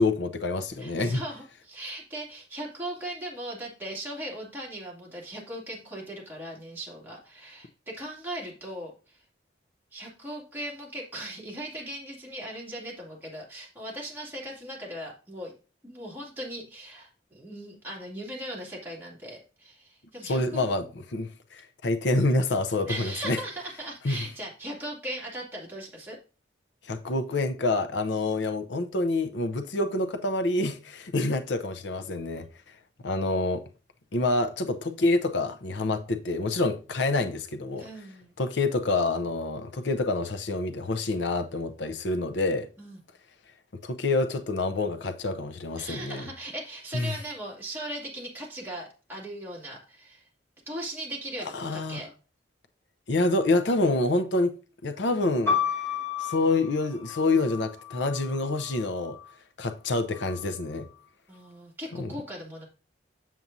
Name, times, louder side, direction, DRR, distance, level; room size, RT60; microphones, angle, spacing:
voice 1, 0.0-1.2 20.2-23.4 24.0-24.2 26.8-32.4 33.0-33.6 34.1-37.9 38.4-42.7 43.8-46.2 46.9-47.1 51.5-52.0 53.1-54.5 54.8-55.6 56.2-59.2 59.6-60.9 61.9-62.1, left 2 dB, 75° left, 0.7 m, -27 dB
voice 2, 0.8-9.2 9.9-15.5 15.8-20.6 22.9-26.2 37.8-38.3 42.8-43.0 45.8-50.3 50.7-52.1 61.3-62.6, right 1 dB, 10° right, 2.6 m, -38 dB
sound 1, 55.5-59.3 60.1-60.8, left 7 dB, 15° left, 2.0 m, -33 dB
7.4 x 7.2 x 2.7 m
head